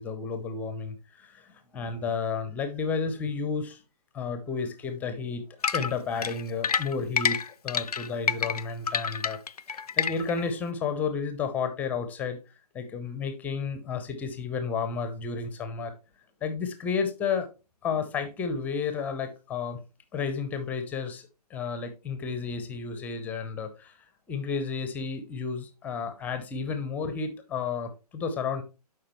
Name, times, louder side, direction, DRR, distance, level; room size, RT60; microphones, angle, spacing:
voice 1, 0.0-3.8 4.1-5.4 5.7-7.4 7.6-9.4 9.7-12.4 12.7-15.9 16.4-17.5 17.8-19.8 20.1-24.0 24.3-28.6, left 5 dB, 10° left, 8 dB, 0.6 m, -32 dB
sound 1, 5.6-10.4, left 6 dB, 70° left, 0.4 m, -28 dB
11.5 x 4.9 x 3.0 m, 0.30 s
figure-of-eight pair, 130°, 20 cm